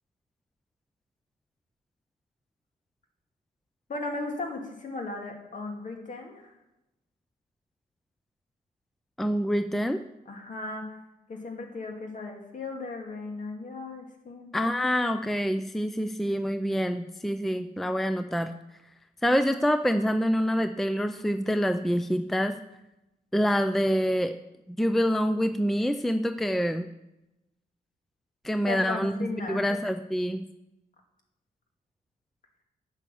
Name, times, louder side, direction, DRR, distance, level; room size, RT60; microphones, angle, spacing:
voice 1, 3.9-6.5 10.3-10.9 11.3-14.6 28.7-29.7, left 3 dB, 50° left, 2 dB, 2.3 m, -36 dB
voice 2, 9.2-10.0 14.5-18.5 19.2-22.5 23.3-24.3 24.7-26.9 28.4-30.4, equal, ahead, 9 dB, 0.5 m, -26 dB
8.4 x 6.3 x 6.9 m, 0.93 s
cardioid pair, 80°, 16 cm